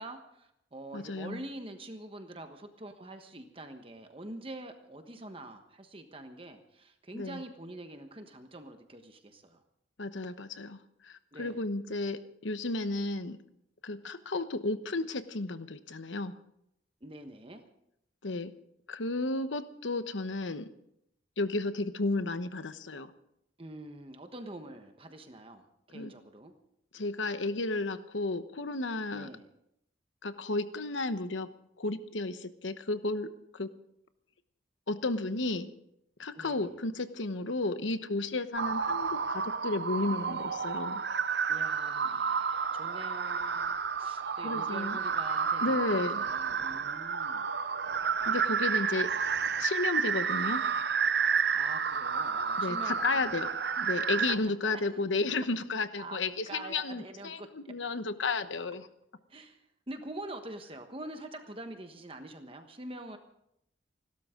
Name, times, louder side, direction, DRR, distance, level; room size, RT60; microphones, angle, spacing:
voice 1, 0.0-9.6 11.3-11.6 17.0-17.6 23.6-26.5 29.1-29.5 36.4-36.8 41.5-47.5 51.5-53.4 54.3-55.0 56.0-57.7 59.3-59.6 59.9-63.2, right 1 dB, 30° right, 6 dB, 1.3 m, -45 dB
voice 2, 0.9-1.4 7.1-7.4 10.0-13.4 13.8-16.4 18.2-18.5 18.9-20.7 21.4-23.1 25.9-26.1 26.9-29.3 30.2-31.5 31.8-33.7 34.9-35.7 36.2-41.0 44.4-45.0 45.6-46.2 48.3-49.1 49.6-50.7 52.6-53.5 53.8-58.9, left 2 dB, 90° left, 11 dB, 1.1 m, -33 dB
sound 1, 38.6-54.3, right 6 dB, 60° right, 0.6 m, -31 dB
29.5 x 12.5 x 3.8 m, 0.78 s
head